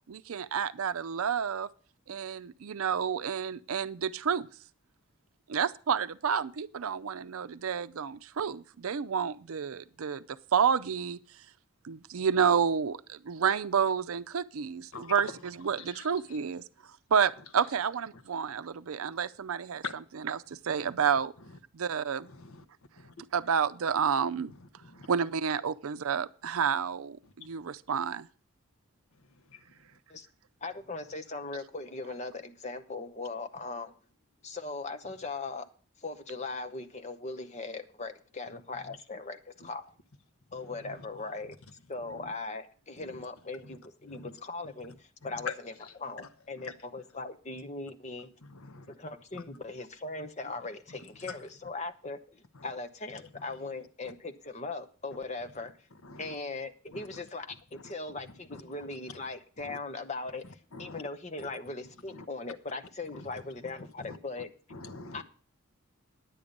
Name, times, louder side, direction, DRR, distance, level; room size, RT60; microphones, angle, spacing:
voice 1, 0.1-1.7 2.1-4.5 5.5-11.2 11.8-16.6 17.1-19.8 20.1-21.3 21.7-22.3 23.3-24.5 25.1-28.3, right 7 dB, 85° right, 0.5 m, -30 dB
voice 2, 14.9-15.3 15.8-16.1 19.8-19.9 22.2-22.6 23.0-23.1 24.8-25.1 29.5-29.6 38.9-39.0 40.5-41.0 42.1-42.3 43.0-43.2 43.6-43.8 44.1-44.3 45.3-45.5 45.8-46.3 46.6-46.7 48.4-48.9 49.3-49.4 51.3-51.4 52.5-52.6 56.0-56.3 56.9-57.1 57.7-57.8 58.5-58.9 59.6-59.8 60.7-61.0 61.4-61.5 62.1-62.3 63.1-63.2 64.0-64.2 64.7-65.2, left 4 dB, 85° left, 1.0 m, -43 dB
voice 3, 30.6-33.9 34.4-35.7 36.0-39.9 40.5-41.6 41.9-45.7 46.0-48.3 48.9-55.8 56.2-64.5 65.1-65.2, left 3 dB, 30° left, 0.8 m, -39 dB
10.5 x 8.5 x 5.2 m
head